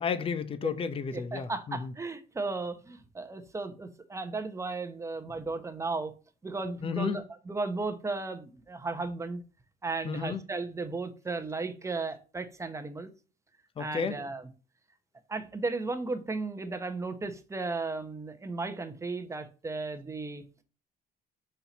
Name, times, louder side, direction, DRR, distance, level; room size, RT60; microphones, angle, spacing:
voice 1, 0.0-1.9 6.8-7.2 10.0-10.4 13.8-14.2, left 6 dB, 35° left, 0.7 m, -32 dB
voice 2, 1.1-6.1 6.4-9.4 9.8-13.1 13.8-14.4 15.3-20.4, right 3 dB, 15° right, 0.9 m, -35 dB
5.6 x 4.4 x 4.0 m
cardioid pair, 110°, 17 cm